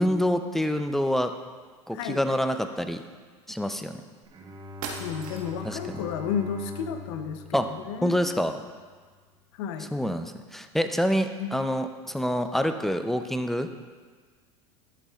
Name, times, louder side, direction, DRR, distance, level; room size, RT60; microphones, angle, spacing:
voice 1, 0.0-1.3 1.9-3.0 3.5-4.0 5.6-6.0 7.5-7.7 8.0-8.6 9.8-13.7, equal, ahead, 8 dB, 0.5 m, -26 dB
sound 1, 4.2-4.3 4.8-5.7, right 5 dB, 60° right, 1.2 m, -38 dB
Bowed string instrument, 4.3-8.8, left 3 dB, 30° right, 1.2 m, -42 dB
voice 2, 5.0-7.6 7.9-8.3 9.6-9.9 11.4-11.5, left 7 dB, 70° left, 8 dB, 0.7 m, -32 dB
11.0 x 8.1 x 2.4 m, 1.5 s
hypercardioid pair, 95°, 15 cm